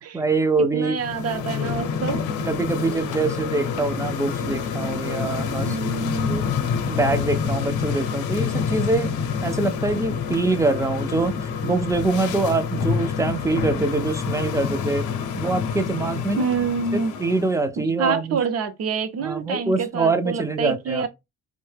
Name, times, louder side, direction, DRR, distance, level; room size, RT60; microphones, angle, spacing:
voice 1, 0.1-1.0 2.4-5.8 6.3-9.1 9.4-15.1 15.4-16.5 16.9-18.4 19.2-21.1, right 3 dB, 10° right, 0.4 m, -24 dB
voice 2, 0.7-2.2 5.7-6.4 16.4-17.1 18.0-21.1, right 5 dB, 55° right, 0.6 m, -26 dB
sound 1, 0.9-17.6, left 6 dB, 80° left, 0.6 m, -27 dB
2.7 x 2.1 x 3.2 m
cardioid pair, 90°, 30 cm